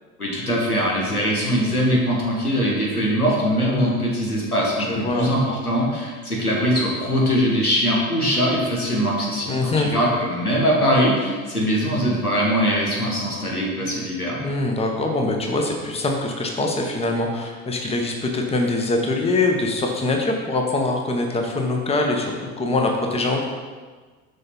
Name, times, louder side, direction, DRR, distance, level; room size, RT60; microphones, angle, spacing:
voice 1, 0.2-14.4, equal, 90° left, -4 dB, 1.6 m, -22 dB
voice 2, 3.6-4.0 4.8-5.3 9.5-9.9 14.4-23.4, left 2 dB, 15° left, 1 dB, 1.0 m, -23 dB
6.4 x 5.4 x 4.5 m, 1.4 s
figure-of-eight pair, 70°, 43 cm